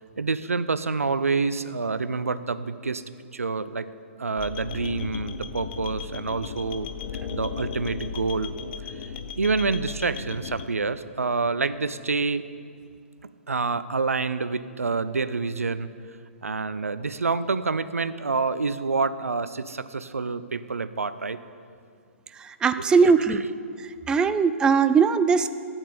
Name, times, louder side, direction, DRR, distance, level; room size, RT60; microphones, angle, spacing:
voice 1, 0.2-3.0 3.3-3.9 4.2-6.9 7.3-8.5 9.4-12.4 13.5-15.9 16.4-21.4 23.2-23.5, right 4 dB, 90° right, 14 dB, 0.6 m, -27 dB
sound 1, 4.4-10.7, left 7 dB, 45° left, 0.9 m, -36 dB
voice 2, 22.4-23.4 24.1-25.5, right 5 dB, 10° right, 11 dB, 0.4 m, -20 dB
13.0 x 9.0 x 6.6 m, 2.3 s
hypercardioid pair, 130°, 7 cm